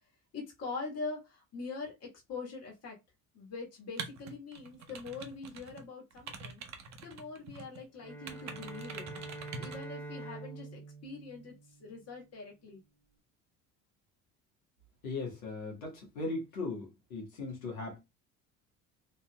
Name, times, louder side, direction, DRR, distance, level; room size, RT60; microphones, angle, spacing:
voice 1, 0.3-3.0 3.3-6.6 7.0-9.1 9.6-11.5 11.8-12.8, left 4 dB, 40° left, 1.6 m, -43 dB
sound 1, 4.0-5.8 6.1-7.8 8.3-9.8, right 5 dB, 45° right, 0.9 m, -45 dB
Bowed string instrument, 7.9-12.3, right 3 dB, 5° left, 0.8 m, -46 dB
voice 2, 15.0-18.0, left 3 dB, 85° left, 1.5 m, -38 dB
3.4 x 2.7 x 2.3 m
hypercardioid pair, 70°, 40 cm